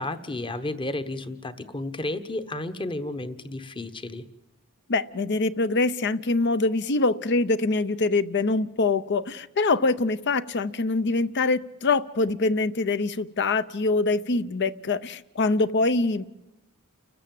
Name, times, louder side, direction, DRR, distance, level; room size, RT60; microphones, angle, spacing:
voice 1, 0.0-4.2, left 2 dB, 25° left, 11 dB, 1.1 m, -32 dB
voice 2, 4.9-16.3, left 3 dB, 55° left, 14 dB, 0.7 m, -24 dB
29.5 x 14.0 x 7.7 m, 1.0 s
head